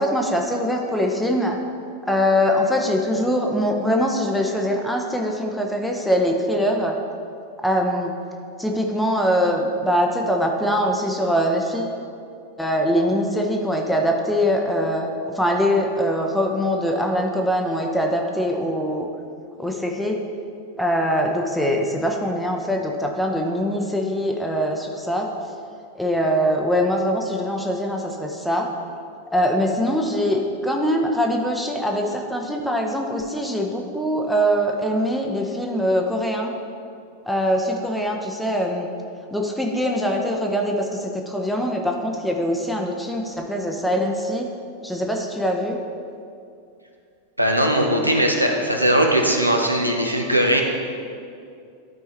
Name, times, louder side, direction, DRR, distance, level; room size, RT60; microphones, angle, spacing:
voice 1, 0.0-1.6 2.1-7.0 7.6-8.1 8.6-11.9 12.6-15.1 15.3-19.1 19.6-20.2 20.8-25.3 25.9-28.7 29.3-36.5 37.3-38.9 39.3-44.5 44.8-45.8, equal, ahead, 1 dB, 0.7 m, -23 dB
voice 2, 47.4-50.6, right 1 dB, 90° right, 1 dB, 0.8 m, -19 dB
12.0 x 4.5 x 3.2 m, 2.4 s
figure-of-eight pair, 90°, 0 cm